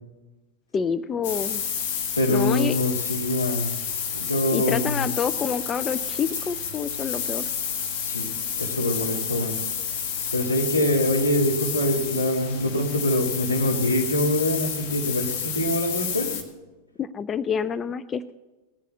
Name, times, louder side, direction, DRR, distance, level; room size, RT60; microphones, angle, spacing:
voice 1, 0.7-1.6 2.3-2.8 4.5-7.4 17.0-18.3, left 7 dB, 25° left, 15 dB, 0.4 m, -28 dB
sound 1, 1.2-16.4, left 7 dB, 50° left, 2.0 m, -30 dB
voice 2, 2.2-3.7 4.1-5.1 8.0-9.5 10.3-16.3, left 1 dB, 90° left, 1 dB, 2.2 m, -24 dB
19.0 x 8.3 x 7.5 m, 1.2 s
figure-of-eight pair, 90°, 0 cm